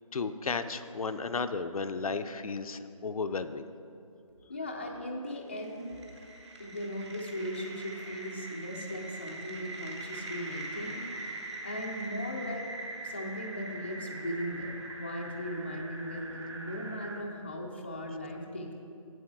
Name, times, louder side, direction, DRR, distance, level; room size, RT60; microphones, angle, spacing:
voice 1, 0.1-3.7, left 4 dB, 75° left, 9 dB, 0.5 m, -34 dB
voice 2, 4.5-5.9 6.6-11.3 11.6-12.7 13.0-18.7, equal, 20° left, 0 dB, 0.4 m, -38 dB
sound 1, 5.3-17.2, right 2 dB, 50° right, 1.2 m, -42 dB
8.1 x 7.8 x 4.6 m, 2.6 s
figure-of-eight pair, 170°, 18 cm